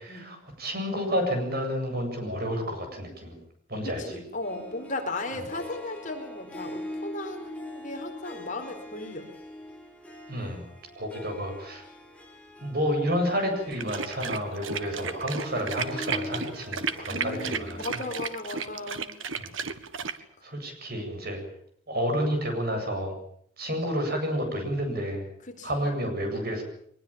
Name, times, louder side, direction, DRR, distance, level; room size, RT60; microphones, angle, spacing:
voice 1, 0.0-3.4 3.7-4.0 10.3-10.6 11.0-11.8 12.6-17.7 20.4-21.4 21.9-23.2 23.6-25.2 25.6-26.6, equal, 50° right, 5 dB, 8.0 m, -30 dB
voice 2, 3.8-9.3 17.1-19.1 20.4-20.5 25.4-25.9, left 2 dB, 40° left, 4 dB, 4.4 m, -36 dB
Harp, 4.4-18.4, left 1 dB, 5° left, 4.7 m, -43 dB
sound 1, 13.7-20.2, right 6 dB, 85° right, 1.7 m, -33 dB
23.0 x 21.0 x 8.8 m, 0.66 s
head